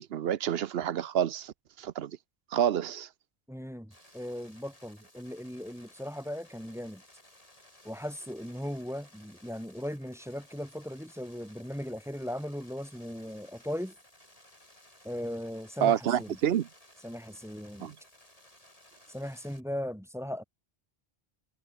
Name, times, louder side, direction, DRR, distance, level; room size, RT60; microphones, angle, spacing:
voice 1, 0.0-2.2 2.5-3.1 15.8-16.7 17.8-17.9, right 10 dB, 70° right, 0.9 m, -28 dB
voice 2, 3.5-7.0 7.8-13.9 15.0-16.4 17.0-17.9 19.1-20.4, equal, 5° right, 1.2 m, -38 dB
sound 1, 3.9-19.6, left 1 dB, 35° left, 6.1 m, -58 dB
omnidirectional pair, 1.1 m